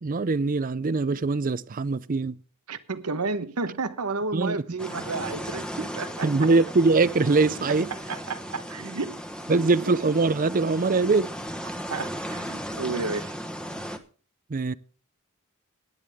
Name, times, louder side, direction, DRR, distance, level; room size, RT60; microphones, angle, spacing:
voice 1, 0.0-2.4 4.3-4.6 6.2-7.9 9.5-11.3 14.5-14.7, right 3 dB, 40° right, 0.5 m, -22 dB
voice 2, 2.7-6.5 8.1-9.2 11.9-13.3, right 3 dB, 85° right, 1.1 m, -32 dB
sound 1, 4.8-14.0, equal, 5° left, 1.2 m, -36 dB
16.5 x 10.5 x 3.5 m
head